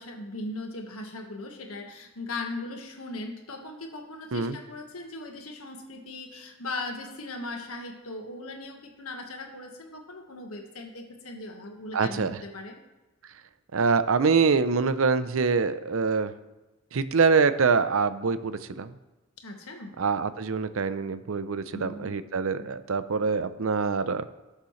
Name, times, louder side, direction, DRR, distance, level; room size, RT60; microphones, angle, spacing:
voice 1, 0.0-12.8 19.4-19.9 21.7-22.1 22.6-22.7, left 2 dB, 85° left, 3 dB, 1.6 m, -38 dB
voice 2, 11.9-12.4 13.7-16.3 16.9-18.9 20.0-24.3, right 5 dB, 70° right, 12 dB, 0.6 m, -25 dB
18.5 x 6.7 x 3.2 m, 1.1 s
head